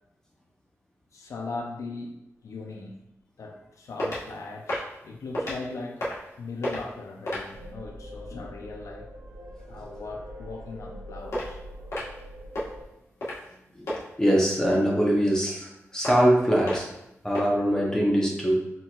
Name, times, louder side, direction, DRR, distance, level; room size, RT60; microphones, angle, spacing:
voice 1, 1.1-2.2 2.4-3.0 3.4-6.0 6.4-9.1 9.7-11.6, left 3 dB, 85° left, 1 dB, 0.6 m, -39 dB
sound 1, 4.0-4.3 4.7-4.9 5.3-5.6 6.0-6.3 6.6-6.9 7.3-7.5 11.3-11.5 11.9-12.2 12.5-12.7 13.2-13.5 13.9-14.0 16.0-16.3 16.7-16.9 17.3-17.4, left 1 dB, 70° left, 1.5 m, -30 dB
sound 2, 7.5-12.8, equal, 75° right, 0.8 m, -43 dB
voice 2, 14.2-16.9 17.2-18.7, equal, 10° left, -3 dB, 0.9 m, -23 dB
4.4 x 3.8 x 2.4 m, 0.85 s
wide cardioid pair, 95°, 5 cm